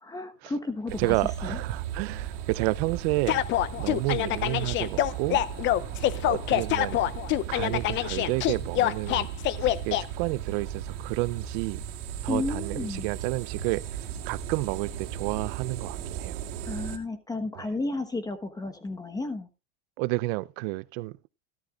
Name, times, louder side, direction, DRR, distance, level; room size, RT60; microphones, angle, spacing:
voice 1, 0.0-1.1 1.4-1.6 12.3-13.1 16.6-19.5, left 2 dB, 10° left, 1.1 m, -32 dB
sound 1, 0.9-17.0, right 9 dB, 75° right, 2.5 m, -36 dB
voice 2, 1.0-3.4 3.8-5.4 6.2-7.0 7.5-9.3 9.6-11.8 12.2-14.0 14.3-16.4 17.6-17.7 20.0-21.2, right 21 dB, 55° right, 0.6 m, -30 dB
sound 2, 3.3-10.0, left 13 dB, 35° left, 0.5 m, -25 dB
13.5 x 12.5 x 2.4 m
supercardioid pair, 145°, 36 cm